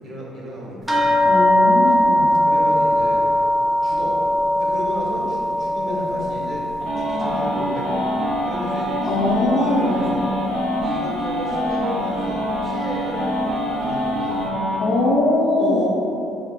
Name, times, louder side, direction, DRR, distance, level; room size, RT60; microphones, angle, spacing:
voice 1, 0.0-1.4 2.4-3.2 3.8-4.2 4.5-8.1 8.4-10.2 10.8-14.4 15.6-15.9, equal, 40° right, -6 dB, 1.1 m, -33 dB
sound 1, 0.9-9.7 10.0-10.9 11.6-11.7 12.2-12.3, left 1 dB, 15° right, 0.5 m, -21 dB
voice 2, 1.2-2.3 5.9-6.0 9.0-10.0 14.8-15.9, left 2 dB, 55° left, -3 dB, 0.6 m, -21 dB
sound 2, 6.8-14.8, equal, 80° right, 0.9 m, -25 dB
4.2 x 3.5 x 2.4 m, 2.8 s
cardioid pair, 125°, 0 cm